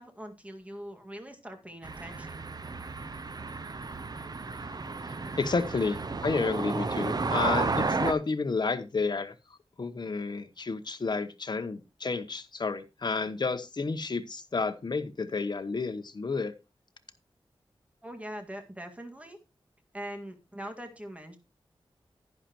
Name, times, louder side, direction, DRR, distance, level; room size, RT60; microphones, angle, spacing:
voice 1, 0.0-2.4 18.0-19.4 19.9-21.4, equal, 15° right, 4 dB, 1.9 m, -42 dB
sound 1, 1.8-8.1, right 3 dB, 45° right, 0.7 m, -32 dB
voice 2, 5.4-9.3 9.8-16.5, left 4 dB, 50° left, 9 dB, 1.0 m, -31 dB
11.0 x 10.0 x 3.0 m, 0.26 s
wide cardioid pair, 115°, 10 cm